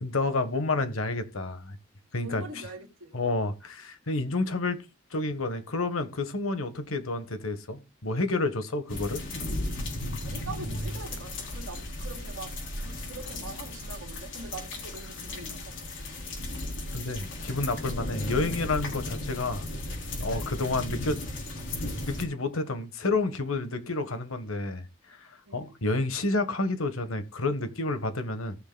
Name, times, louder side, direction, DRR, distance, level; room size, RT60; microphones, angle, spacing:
voice 1, 0.0-1.8 2.1-2.4 3.1-4.8 5.1-9.2 16.9-19.7 20.2-21.2 22.0-28.6, left 2 dB, 80° left, 1.4 m, -30 dB
voice 2, 2.2-3.2 10.2-16.4 25.5-25.8, right 3 dB, 90° right, 2.7 m, -43 dB
sound 1, 8.9-22.2, left 1 dB, 60° left, 3.5 m, -35 dB
18.5 x 6.5 x 2.3 m
head